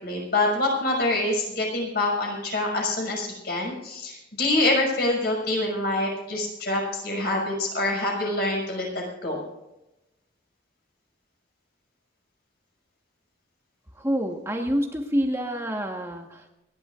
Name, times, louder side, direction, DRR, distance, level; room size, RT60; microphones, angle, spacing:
voice 1, 0.0-8.9 9.2-9.5, left 2 dB, 55° left, 0 dB, 6.1 m, -25 dB
voice 2, 14.0-16.5, equal, 15° right, 2 dB, 1.3 m, -27 dB
29.5 x 11.5 x 2.5 m, 0.94 s
head